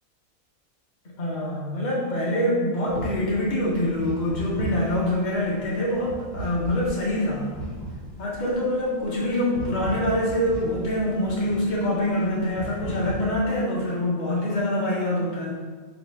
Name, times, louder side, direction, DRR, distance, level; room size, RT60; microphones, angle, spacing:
voice 1, 1.0-7.5 8.2-15.5, left 1 dB, 40° left, -4 dB, 0.9 m, -25 dB
sound 1, 2.9-13.2, right 1 dB, ahead, 0.4 m, -37 dB
4.1 x 2.4 x 4.6 m, 1.5 s
omnidirectional pair, 1.5 m